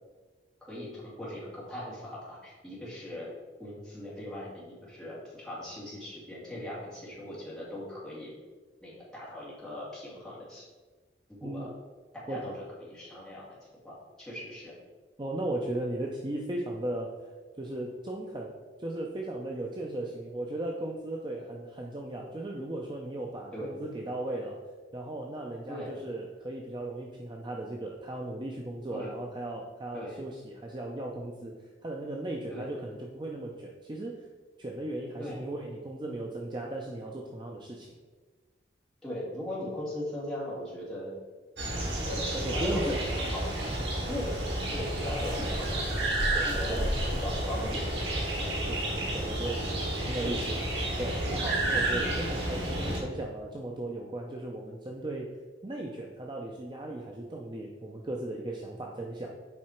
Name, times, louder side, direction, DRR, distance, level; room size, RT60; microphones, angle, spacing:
voice 1, 0.6-3.3 3.6-8.3 8.8-10.6 11.3-11.7 12.1-13.5 13.8-14.7 23.5-23.8 25.7-26.0 28.9-29.1 29.9-30.2 32.5-32.7 35.2-35.5 39.0-41.1 42.1-43.7 44.1-44.3 44.7-46.0 46.4-46.8 47.1-47.8 50.2-50.4 52.8-53.0, left 1 dB, 5° left, -8 dB, 2.3 m, -39 dB
voice 2, 15.2-18.5 18.8-24.6 24.9-31.5 31.8-34.3 34.6-37.9 42.3-43.2 44.0-44.2 46.3-46.9 48.6-50.6 51.0-55.4 55.6-59.3, right 1 dB, 25° right, 0 dB, 0.5 m, -37 dB
sound 1, 41.6-53.0, right 1 dB, 80° right, 1.8 m, -31 dB
7.5 x 4.7 x 4.4 m, 1.4 s
head